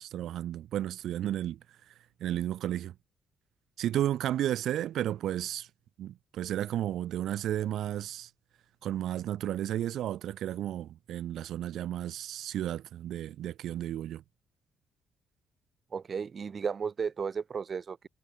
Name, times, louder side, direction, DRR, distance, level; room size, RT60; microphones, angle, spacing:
voice 1, 0.0-2.9 3.8-5.7 6.0-8.3 8.8-14.2, right 12 dB, 75° right, 0.8 m, -33 dB
voice 2, 15.9-18.1, right 6 dB, 45° right, 3.0 m, -34 dB
cardioid pair, 90°, 0 cm